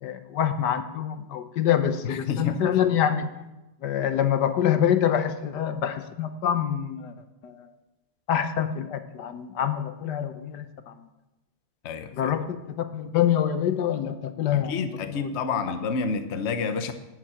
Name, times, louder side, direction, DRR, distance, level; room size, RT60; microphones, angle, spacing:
voice 1, 0.0-3.3 3.8-7.1 7.4-7.7 8.3-10.9 12.1-12.5 12.9-14.7 15.1-15.4 15.7-15.8, left 9 dB, 80° left, 10 dB, 1.5 m, -25 dB
voice 2, 2.0-2.6 11.8-12.3 14.5-16.9, left 5 dB, 45° left, 9 dB, 1.1 m, -29 dB
12.0 x 7.4 x 8.8 m, 1.0 s
omnidirectional pair, 1.8 m